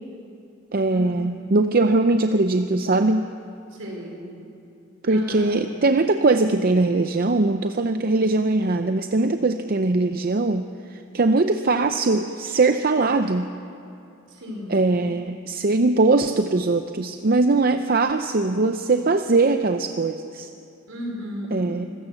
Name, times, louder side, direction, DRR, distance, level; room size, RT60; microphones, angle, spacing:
voice 1, 0.7-3.3 5.0-10.6 10.9-13.5 14.7-20.5 21.5-21.9, right 3 dB, 45° right, 8 dB, 0.6 m, -21 dB
voice 2, 3.7-4.1 5.1-5.6 14.3-14.8 20.9-21.7, equal, 70° right, 0 dB, 5.0 m, -34 dB
25.0 x 15.5 x 7.1 m, 2.7 s
head